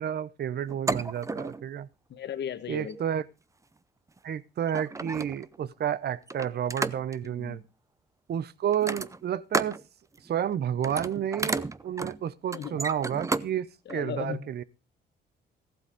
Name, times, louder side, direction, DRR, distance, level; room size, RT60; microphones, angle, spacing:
voice 1, 0.0-1.9 2.7-3.2 4.2-7.6 8.3-9.8 10.2-14.6, right 9 dB, 55° right, 0.8 m, -31 dB
sound 1, 0.7-1.7 2.8-3.0 4.2-4.3 4.6-5.6 6.3-7.3 8.7-9.8 10.2-10.5 10.7-13.5 13.9-14.0, right 3 dB, 15° right, 0.6 m, -32 dB
voice 2, 2.1-3.0 7.2-7.6 12.5-12.8 13.9-14.5, left 9 dB, 60° left, 1.4 m, -36 dB
15.0 x 8.0 x 5.1 m
cardioid pair, 90°, 20 cm